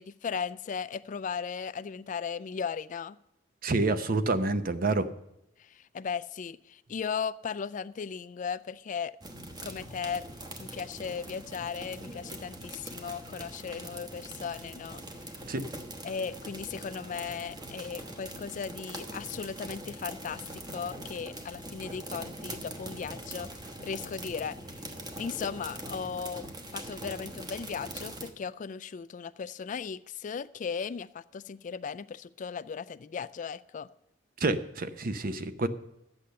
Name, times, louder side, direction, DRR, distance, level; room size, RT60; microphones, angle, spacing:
voice 1, 0.0-3.2 5.6-9.2 9.6-10.2 10.6-15.0 16.0-23.5 23.8-24.6 25.2-26.4 26.7-33.9, left 6 dB, 45° left, 15 dB, 0.3 m, -37 dB
voice 2, 3.6-5.1 15.5-15.6 34.4-35.7, right 2 dB, 50° right, 11 dB, 0.7 m, -28 dB
sound 1, 9.2-28.3, right 1 dB, 20° right, 1.1 m, -42 dB
11.5 x 8.4 x 6.6 m, 0.85 s
head